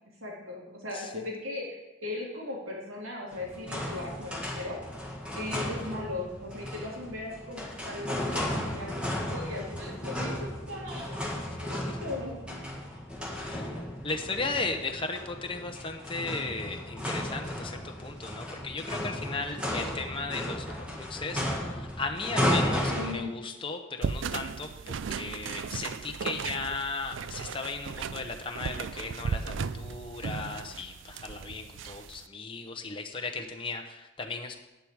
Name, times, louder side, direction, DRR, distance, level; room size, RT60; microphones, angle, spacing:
voice 1, 0.2-4.8 5.3-8.9 9.3-11.2 11.7-12.3 22.9-23.3, left 2 dB, 80° right, -3 dB, 3.4 m, -38 dB
sound 1, 3.3-23.1, left 1 dB, 5° right, 1.7 m, -34 dB
voice 2, 13.3-13.7 14.0-34.6, left 3 dB, 25° left, 4 dB, 0.9 m, -36 dB
sound 2, 24.0-32.2, right 5 dB, 65° right, 0.4 m, -36 dB
10.5 x 9.6 x 4.8 m, 1.0 s
head